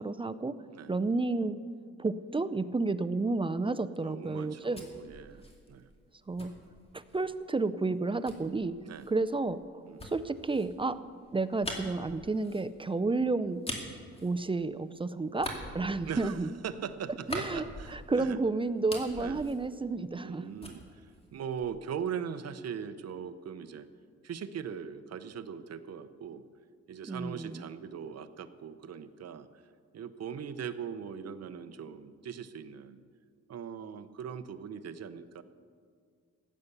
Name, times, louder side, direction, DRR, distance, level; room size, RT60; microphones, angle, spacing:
voice 1, 0.0-0.5 0.9-1.6 2.0-4.9 6.3-6.5 6.9-8.7 9.1-9.6 10.0-11.0 11.3-13.6 14.2-16.5 17.3-17.6 17.9-20.5 27.1-27.6, right 3 dB, 15° right, 12 dB, 0.4 m, -31 dB
voice 2, 4.0-5.9 8.8-9.1 9.9-10.1 16.1-18.4 19.2-19.5 20.1-21.1 21.3-23.9 24.2-26.4 26.9-29.5 29.9-33.0 33.5-35.4, right 7 dB, 55° right, 11 dB, 0.8 m, -40 dB
sound 1, 4.3-7.4 8.3-14.9 15.3-18.4 18.7-20.3 20.6-21.9, left 1 dB, 20° left, 2.5 m, -44 dB
15.5 x 9.5 x 6.8 m, 2.1 s
cardioid pair, 100°, 30 cm